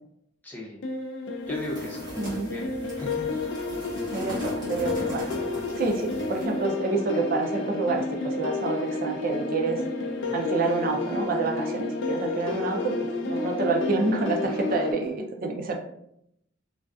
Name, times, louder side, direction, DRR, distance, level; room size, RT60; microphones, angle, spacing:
voice 1, 0.4-0.8 1.5-2.1 2.4-3.3 5.8-5.9 10.1-10.4 12.5-12.6, equal, 10° left, -4 dB, 0.5 m, -38 dB
sound 1, 0.8-14.9, left 3 dB, 65° left, 0.3 m, -31 dB
sound 2, 1.5-6.6, equal, 20° right, 1.0 m, -39 dB
voice 2, 2.2-2.5 4.1-5.3 5.8-9.8 10.3-15.8, right 3 dB, 45° right, 2 dB, 0.4 m, -28 dB
2.4 x 2.3 x 2.3 m, 0.76 s
head